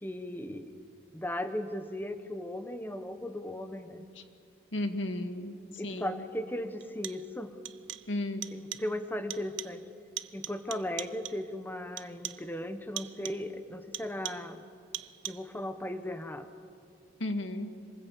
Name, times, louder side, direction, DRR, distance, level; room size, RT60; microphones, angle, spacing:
voice 1, 0.0-0.7 1.1-4.1 5.8-7.6 8.5-9.8 10.3-14.6 15.3-16.5, left 1 dB, 10° left, 9 dB, 1.1 m, -37 dB
voice 2, 4.7-5.6 5.8-6.2 8.1-8.5 17.2-17.7, left 1 dB, 80° left, 7 dB, 1.9 m, -34 dB
sound 1, 5.8-5.9 6.8-7.4 7.6-8.2 8.4-9.0 9.3-9.9 10.2-11.5 12.0-12.5 13.0-13.5 13.9-14.6 14.9-15.6, right 13 dB, 70° right, 0.7 m, -42 dB
26.5 x 20.5 x 8.5 m, 2.6 s
head